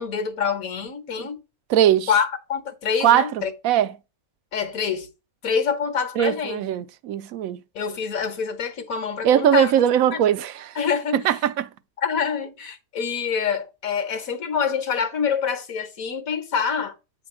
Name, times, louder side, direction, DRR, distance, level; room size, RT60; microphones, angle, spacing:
voice 1, 0.0-1.4 2.1-3.5 4.5-5.1 5.4-6.6 7.7-9.7 10.1-10.2 10.7-11.2 12.0-16.9, left 6 dB, 70° left, 1.6 m, -26 dB
voice 2, 1.7-2.1 3.0-3.9 6.2-7.6 9.2-10.8 11.1-11.7, right 10 dB, 70° right, 1.0 m, -20 dB
9.3 x 3.5 x 6.1 m
omnidirectional pair, 1.6 m